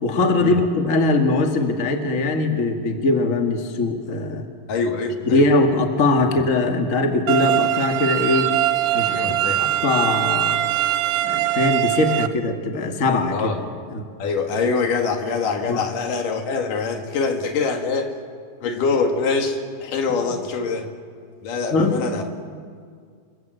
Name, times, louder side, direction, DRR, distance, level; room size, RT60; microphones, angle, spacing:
voice 1, 0.0-4.5 5.2-8.5 8.9-10.6 11.2-13.5 13.9-14.0 15.7-15.8 21.7-22.0, left 2 dB, 30° left, 4 dB, 1.9 m, -21 dB
voice 2, 4.7-5.5 9.1-9.6 13.3-13.6 14.2-18.2 18.6-20.9 21.4-22.2, left 4 dB, 85° left, 5 dB, 3.5 m, -24 dB
sound 1, 7.3-12.3, right 13 dB, 85° right, 2.4 m, -22 dB
28.5 x 21.5 x 7.9 m, 2.1 s
omnidirectional pair, 3.6 m